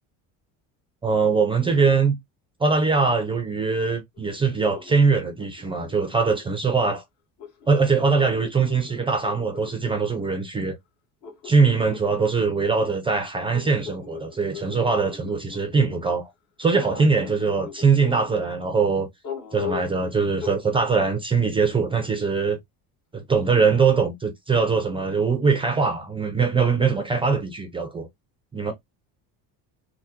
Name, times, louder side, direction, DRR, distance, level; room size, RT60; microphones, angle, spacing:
voice 1, 1.0-2.2 2.6-7.0 7.7-10.7 11.4-16.3 16.6-19.1 19.5-22.6 23.1-28.1 28.5-28.7, right 4 dB, 15° right, 0.4 m, -22 dB
sound 1, 4.2-6.6 7.4-10.4 11.2-16.0 16.7-18.5 19.2-20.0 20.4-20.9, left 7 dB, 55° left, 1.2 m, -39 dB
3.3 x 2.1 x 2.7 m
cardioid pair, 150°, 38 cm